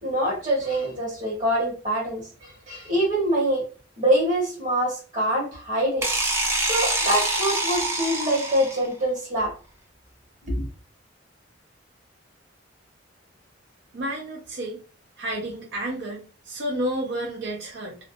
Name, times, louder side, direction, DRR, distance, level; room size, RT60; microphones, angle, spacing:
voice 1, 0.0-3.7 4.0-6.1 6.6-9.5 10.5-10.7, right 1 dB, 40° right, 1.1 m, -25 dB
sound 1, 6.0-8.9, right 2 dB, 15° right, 0.4 m, -25 dB
voice 2, 13.9-14.8 15.2-18.0, right 1 dB, 60° right, 0.5 m, -31 dB
2.5 x 2.1 x 2.5 m
head